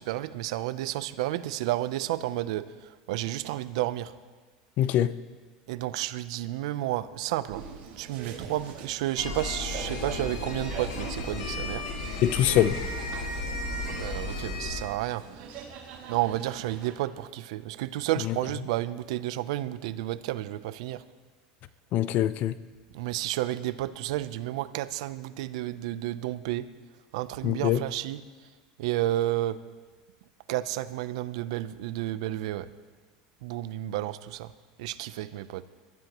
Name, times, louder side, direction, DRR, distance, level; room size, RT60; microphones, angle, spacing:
voice 1, 0.0-2.7 3.1-4.1 5.7-7.6 8.0-11.8 12.5-12.6 13.9-15.2 16.1-21.0 22.9-26.7 27.1-28.2 28.8-29.6 30.5-32.7 33.4-34.5 34.8-35.6, right 15 dB, 75° right, 14 dB, 0.7 m, -31 dB
voice 2, 4.8-5.1 12.2-12.8 18.2-18.4 21.9-22.5 27.4-27.8, left 12 dB, 55° left, 15 dB, 0.6 m, -23 dB
sound 1, 7.5-16.9, right 6 dB, 55° right, 3.8 m, -43 dB
sound 2, 9.2-14.8, left 2 dB, 85° left, 2.5 m, -34 dB
23.5 x 13.0 x 3.1 m, 1.4 s
supercardioid pair, 100°, 3 cm